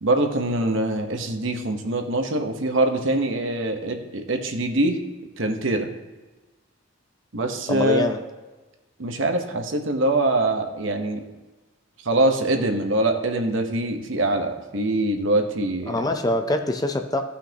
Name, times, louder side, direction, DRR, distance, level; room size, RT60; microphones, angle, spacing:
voice 1, 0.0-5.0 5.4-5.9 7.3-8.1 9.0-11.2 12.0-16.1, right 2 dB, 70° right, 5 dB, 1.0 m, -23 dB
voice 2, 7.7-8.2 15.9-17.2, left 1 dB, 20° left, 6 dB, 0.5 m, -24 dB
15.5 x 5.7 x 2.9 m, 1.2 s
head